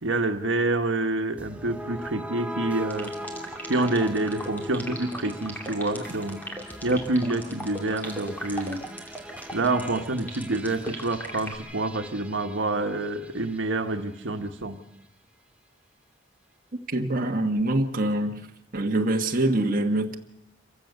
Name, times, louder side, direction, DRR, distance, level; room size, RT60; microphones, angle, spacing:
voice 1, 0.0-3.1 3.7-6.4 6.8-8.8 9.5-14.8, right 2 dB, 85° right, 6 dB, 1.4 m, -27 dB
sound 1, 1.4-13.7, equal, 5° right, 1.0 m, -40 dB
sound 2, 2.9-11.6, equal, 10° left, 2.8 m, -37 dB
voice 2, 16.9-18.4 18.7-20.2, right 1 dB, 50° right, 3 dB, 1.5 m, -24 dB
27.0 x 15.5 x 6.7 m, 0.84 s
head